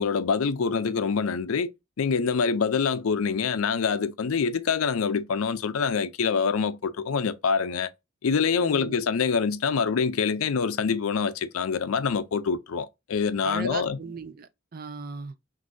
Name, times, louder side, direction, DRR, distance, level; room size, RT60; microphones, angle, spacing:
voice 1, 0.0-1.7 2.0-7.9 8.2-14.0, left 5 dB, 90° left, 0.5 m, -25 dB
voice 2, 8.6-9.0 13.4-15.3, right 4 dB, 45° right, 0.5 m, -37 dB
6.2 x 2.6 x 2.6 m
head